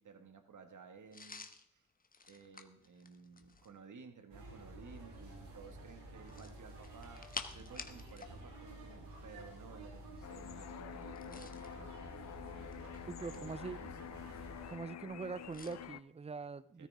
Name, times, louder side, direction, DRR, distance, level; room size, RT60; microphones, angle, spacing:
voice 1, 0.0-1.9 2.3-14.2 16.8-16.9, right 5 dB, 45° right, 2.0 m, -56 dB
sound 1, 1.1-3.8 6.2-8.4 8.6-8.8 11.0-11.7 12.5-13.6 15.5-15.8, left 4 dB, 20° left, 1.3 m, -49 dB
sound 2, 4.3-14.8, right 1 dB, 75° right, 6.2 m, -51 dB
sound 3, 10.2-16.0, left 11 dB, 40° left, 0.6 m, -48 dB
voice 2, 13.1-13.8 14.7-16.9, right 4 dB, 15° right, 0.5 m, -43 dB
13.5 x 13.5 x 3.7 m
supercardioid pair, 60°, 43 cm